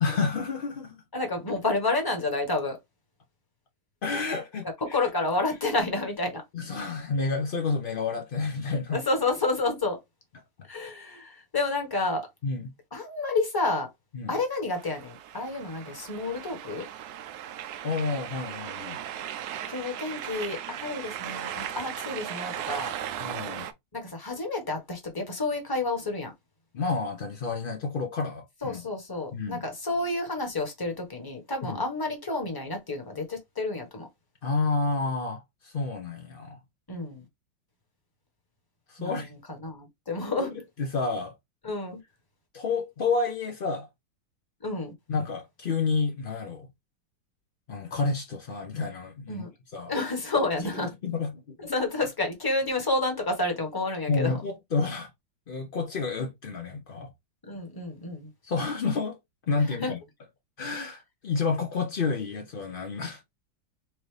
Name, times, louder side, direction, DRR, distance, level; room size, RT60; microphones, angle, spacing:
voice 1, 0.0-1.0 4.0-5.0 6.5-9.0 12.4-12.7 14.1-14.3 17.8-19.0 23.2-23.7 26.7-28.8 29.3-29.6 31.7-31.8 34.4-36.6 38.9-39.3 40.4-40.5 40.8-41.3 42.5-43.9 45.1-46.7 47.7-49.4 49.7-49.9 50.7-51.6 54.1-55.1 55.5-57.1 58.4-59.2 59.5-60.0 60.6-63.2, left 4 dB, 80° left, 0.5 m, -30 dB
voice 2, 1.1-2.8 4.9-6.4 8.9-10.0 10.7-12.3 12.9-13.9 14.3-16.9 19.7-22.9 23.9-26.3 28.6-34.1 36.9-37.2 39.0-39.3 39.6-40.5 41.6-42.0 44.6-44.9 49.3-49.5 49.9-50.9 51.6-54.3 57.4-58.3 59.8-59.9, left 2 dB, 15° left, 1.0 m, -30 dB
sound 1, 14.7-23.7, right 10 dB, 70° right, 1.0 m, -37 dB
4.5 x 2.6 x 3.2 m
omnidirectional pair, 2.0 m